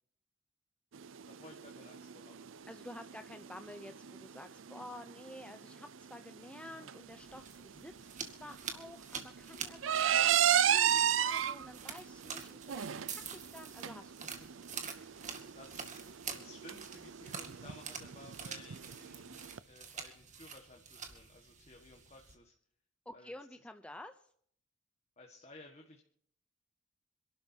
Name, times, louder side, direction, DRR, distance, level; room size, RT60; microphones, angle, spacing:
sound 1, 0.9-19.6, right 10 dB, 75° right, 0.5 m, -34 dB
voice 1, 1.3-2.5 6.7-6.9 7.8-7.9 10.8-11.1 14.2-14.6 15.0-22.6 23.1-23.3 25.2-26.0, left 2 dB, 35° left, 2 dB, 1.7 m, -57 dB
voice 2, 2.7-14.3 23.1-24.3, left 1 dB, 5° left, 6 dB, 0.6 m, -51 dB
sound 2, 7.1-22.3, right 6 dB, 40° right, 2.1 m, -47 dB
27.0 x 12.0 x 2.9 m, 0.62 s
head